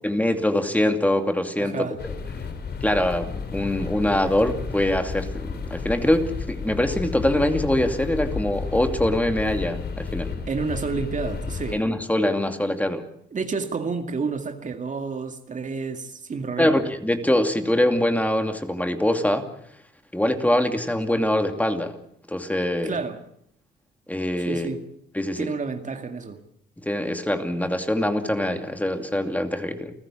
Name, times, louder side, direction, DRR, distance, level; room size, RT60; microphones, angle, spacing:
voice 1, 0.0-1.9 2.8-10.4 11.7-13.0 16.6-19.5 20.1-21.9 22.3-22.9 24.1-24.7 25.1-25.5 26.8-29.9, left 1 dB, 10° left, 2.6 m, -23 dB
voice 2, 1.6-2.0 10.5-11.8 13.3-16.8 22.8-23.2 24.4-24.8 25.4-26.4, right 4 dB, 40° right, 2.2 m, -30 dB
sound 1, 2.0-11.8, left 5 dB, 55° left, 3.8 m, -32 dB
29.5 x 15.0 x 7.4 m
cardioid pair, 90°, 20 cm